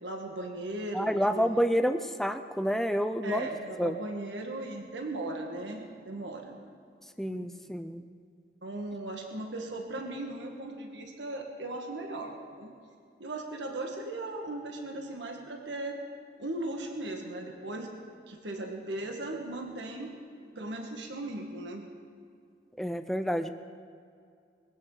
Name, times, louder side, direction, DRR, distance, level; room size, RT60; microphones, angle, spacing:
voice 1, 0.0-1.5 3.2-6.6 7.3-7.5 8.6-12.7 13.2-15.9 16.4-17.9 18.3-21.9, right 2 dB, 90° right, 2 dB, 1.6 m, -37 dB
voice 2, 0.9-3.5 3.8-4.0 7.2-8.0 22.8-23.5, equal, ahead, 8 dB, 0.6 m, -29 dB
22.0 x 16.0 x 4.0 m, 2.3 s
head